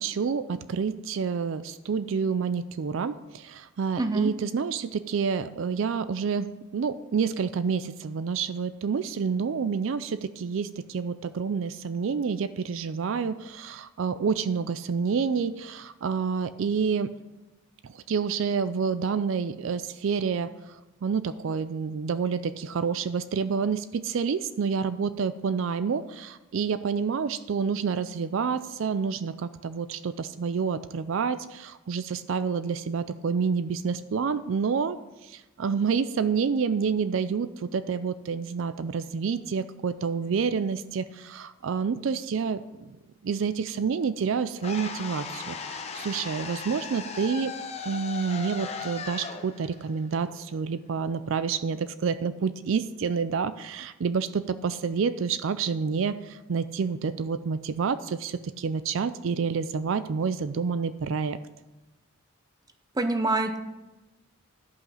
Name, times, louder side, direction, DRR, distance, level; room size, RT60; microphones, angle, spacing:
voice 1, 0.0-17.1 17.8-20.7 21.0-35.0 35.2-43.0 43.2-47.5 47.9-61.4, right 5 dB, 65° right, 13 dB, 0.4 m, -28 dB
voice 2, 4.0-4.3 63.0-63.6, right 2 dB, 15° right, 8 dB, 0.6 m, -25 dB
sound 1, 44.6-50.7, left 4 dB, 30° left, 0.8 m, -37 dB
12.0 x 5.6 x 5.6 m, 1.0 s
head